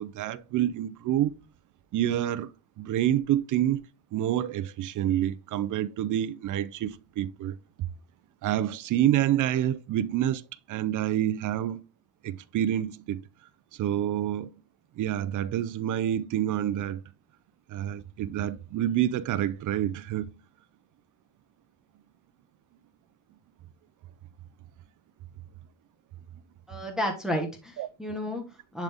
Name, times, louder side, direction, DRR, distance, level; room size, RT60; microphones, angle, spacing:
voice 1, 0.0-1.3 1.9-3.9 4.1-7.9 8.4-11.8 12.2-13.2 13.8-14.5 15.0-17.0 17.7-20.3 27.8-27.9, right 11 dB, 40° right, 0.5 m, -28 dB
voice 2, 26.7-28.8, equal, ahead, 1.2 m, -32 dB
10.5 x 4.0 x 3.5 m
cardioid pair, 165°, 47 cm